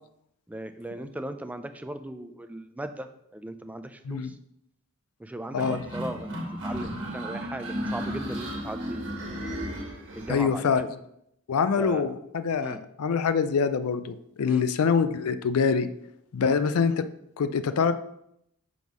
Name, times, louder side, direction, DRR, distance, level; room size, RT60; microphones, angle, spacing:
voice 1, 0.5-3.1 3.3-4.4 5.2-9.3 10.2-10.9 11.8-12.1 12.6-12.8 14.5-14.6 16.4-16.6, right 1 dB, 5° right, 8 dB, 0.3 m, -38 dB
sound 1, 5.6-10.4, equal, 60° right, 1.6 m, -34 dB
voice 2, 10.3-10.9 11.5-15.9 16.3-17.0 17.4-17.9, left 6 dB, 90° left, 12 dB, 0.4 m, -25 dB
6.1 x 3.5 x 6.1 m, 0.77 s
head